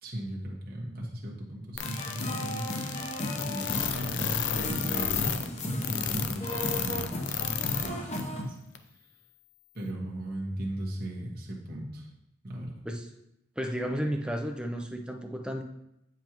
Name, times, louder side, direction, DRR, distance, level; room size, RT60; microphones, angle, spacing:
voice 1, 0.0-8.6 9.7-12.1 12.4-12.8, right 1 dB, 50° right, -2 dB, 1.4 m, -37 dB
sound 1, 1.7-7.9 8.2-8.3 8.7-8.8, left 8 dB, 60° left, 0.5 m, -31 dB
sound 2, 1.8-8.4, left 1 dB, 35° left, 0.9 m, -35 dB
voice 2, 13.6-15.6, equal, 5° right, 3 dB, 0.6 m, -32 dB
9.0 x 5.4 x 3.0 m, 0.85 s
head